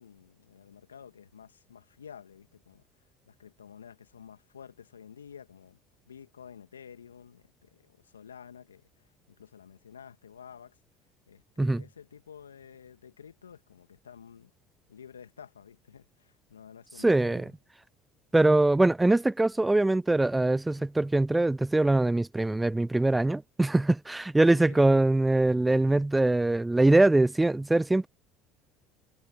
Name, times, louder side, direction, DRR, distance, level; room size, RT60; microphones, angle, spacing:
voice 1, 0.0-2.8 3.3-5.8 6.1-8.9 9.3-10.8 11.3-14.5 14.9-17.4 24.5-25.1, left 7 dB, 85° left, 1.9 m, -50 dB
voice 2, 17.0-17.5 18.3-28.1, right 2 dB, 10° right, 0.8 m, -23 dB
hypercardioid pair, 65°, 0 cm